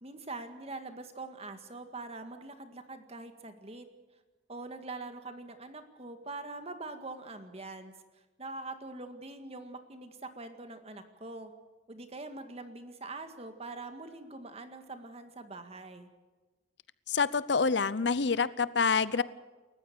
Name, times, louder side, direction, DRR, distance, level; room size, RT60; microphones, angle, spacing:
voice 1, 0.0-3.9 4.5-7.9 8.4-11.5 11.9-16.1, right 3 dB, 35° right, 7 dB, 1.9 m, -43 dB
voice 2, 17.1-19.2, left 5 dB, 65° left, 17 dB, 0.7 m, -27 dB
28.5 x 14.5 x 6.9 m, 1.3 s
head